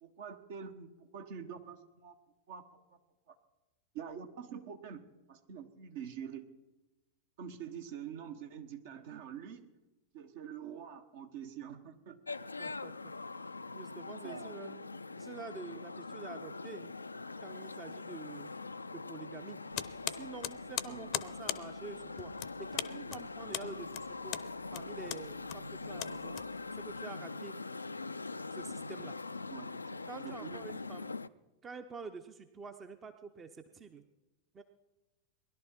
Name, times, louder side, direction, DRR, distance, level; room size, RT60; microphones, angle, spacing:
voice 1, 0.0-2.2 2.5-2.8 3.3-3.4 3.9-6.4 7.4-9.7 10.1-12.2 14.2-14.6 20.9-21.1 29.5-29.7 30.2-30.6, right 8 dB, 55° right, 7 dB, 1.3 m, -46 dB
sound 1, 12.3-31.3, left 3 dB, 80° left, 0.4 m, -43 dB
voice 2, 12.6-13.1 13.7-14.8 15.2-16.9 17.4-18.5 18.9-19.6 20.1-22.3 22.6-24.4 24.7-26.4 26.8-27.5 28.5-29.1 30.1-31.1 31.6-34.0 34.5-34.6, right 4 dB, 20° right, 8 dB, 0.8 m, -47 dB
sound 2, 19.7-26.9, left 15 dB, 40° left, 0.6 m, -40 dB
20.0 x 11.5 x 4.4 m, 1.1 s
figure-of-eight pair, 90°, 0 cm